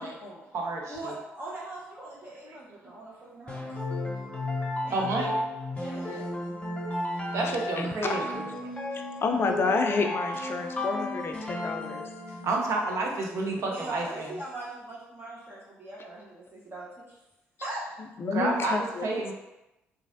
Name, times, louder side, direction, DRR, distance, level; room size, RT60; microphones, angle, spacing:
voice 1, 0.0-0.5 0.9-3.7 4.8-5.3 5.7-6.2 13.7-17.2 17.6-17.9, right 2 dB, 40° right, -7 dB, 0.9 m, -41 dB
voice 2, 0.5-1.0 2.5-2.6 4.9-5.3 6.0-6.2 7.3-8.7 12.4-14.3 18.3-19.3, right 2 dB, 60° right, 0 dB, 0.6 m, -30 dB
sound 1, 3.5-12.7, left 1 dB, 20° left, 0.8 m, -33 dB
voice 3, 7.4-8.3 8.9-12.1 17.6-17.7 18.0-19.3, left 4 dB, 45° left, 4 dB, 0.4 m, -30 dB
3.0 x 2.4 x 2.6 m, 0.95 s
hypercardioid pair, 50°, 6 cm